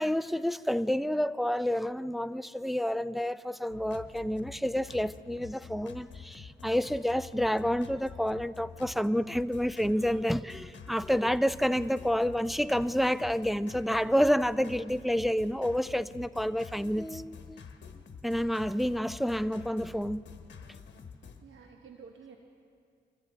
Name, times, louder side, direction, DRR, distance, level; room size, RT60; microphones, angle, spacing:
voice 1, 0.0-17.6 18.2-20.2, equal, ahead, 0.4 m, -29 dB
sound 1, 3.7-21.4, left 6 dB, 65° left, 1.1 m, -48 dB
voice 2, 21.4-22.4, right 6 dB, 85° right, 1.0 m, -51 dB
24.5 x 14.5 x 4.0 m
cardioid pair, 65°, 19 cm